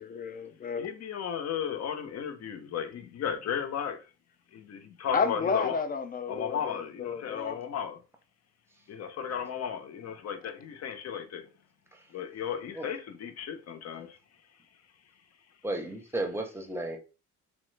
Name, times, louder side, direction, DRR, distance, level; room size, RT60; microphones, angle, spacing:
voice 1, 0.0-0.9 5.1-7.6, left 5 dB, 30° left, 0.4 m, -31 dB
voice 2, 0.8-4.0 4.5-5.8 6.3-8.0 8.9-11.5 12.1-14.2, left 8 dB, 55° left, 0.7 m, -35 dB
voice 3, 15.6-17.0, right 2 dB, 10° right, 0.7 m, -34 dB
3.0 x 2.1 x 3.2 m
cardioid pair, 90°, 30 cm